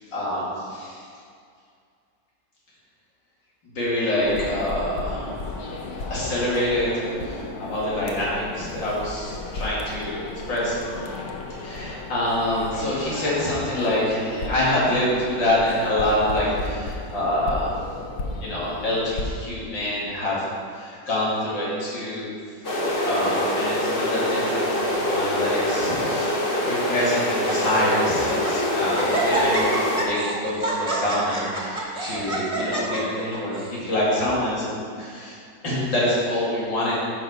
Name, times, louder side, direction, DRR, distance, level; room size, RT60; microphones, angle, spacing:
voice 1, 0.1-1.0 3.7-5.4 6.1-10.2 10.5-10.8 11.6-17.7 18.4-20.4 20.7-22.3 23.0-35.4 35.6-36.9, left 1 dB, 80° left, -8 dB, 3.2 m, -26 dB
sound 1, 4.2-19.3, left 2 dB, 60° left, 1.3 m, -34 dB
sound 2, 22.6-30.0, left 1 dB, 35° left, 1.0 m, -24 dB
Laughter, 22.7-23.5 24.2-24.6 24.9-25.0 25.7-26.3 26.9-27.0 27.3-27.7 28.1-28.6 28.9-33.7, right 2 dB, 20° right, 1.5 m, -28 dB
10.0 x 5.8 x 4.9 m, 2.2 s
omnidirectional pair, 2.0 m